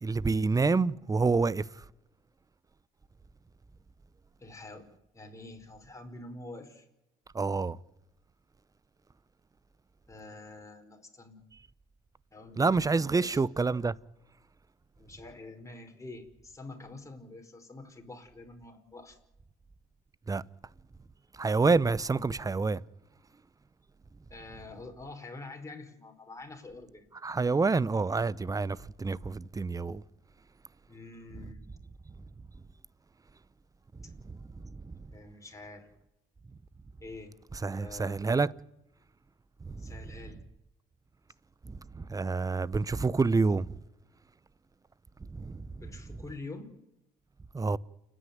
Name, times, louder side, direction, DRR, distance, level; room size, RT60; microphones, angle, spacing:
voice 1, 0.0-1.6 7.3-7.8 12.6-13.9 20.3-20.4 21.3-22.8 27.2-30.0 34.3-34.4 34.9-35.0 37.6-38.5 39.7-39.9 41.7-43.8 45.3-45.7 47.5-47.8, right 4 dB, 20° right, 0.7 m, -28 dB
voice 2, 4.4-6.9 10.1-11.4 12.3-13.4 15.0-19.2 24.3-27.1 30.9-31.7 34.0-34.1 35.0-35.9 37.0-37.3 37.7-38.2 39.8-40.4 45.8-46.7, left 2 dB, 15° left, 4.9 m, -46 dB
29.5 x 10.0 x 9.6 m
supercardioid pair, 75°, 19 cm